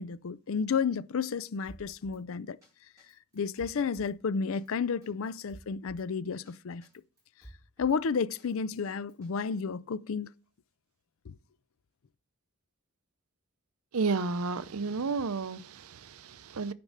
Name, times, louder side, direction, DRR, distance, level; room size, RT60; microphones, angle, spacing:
voice 1, 0.0-2.6 3.3-6.9 7.8-10.3 11.3-11.4, left 5 dB, 65° left, 0.4 m, -32 dB
Drum kit, 1.7-2.2 2.6-2.7 3.0-4.1 4.5-4.7 5.0-6.1 6.5-6.6 6.8-8.0 8.4-9.3, right 1 dB, 15° right, 6.0 m, -53 dB
voice 2, 13.9-16.7, right 4 dB, 75° right, 0.6 m, -32 dB
9.6 x 5.2 x 6.4 m
head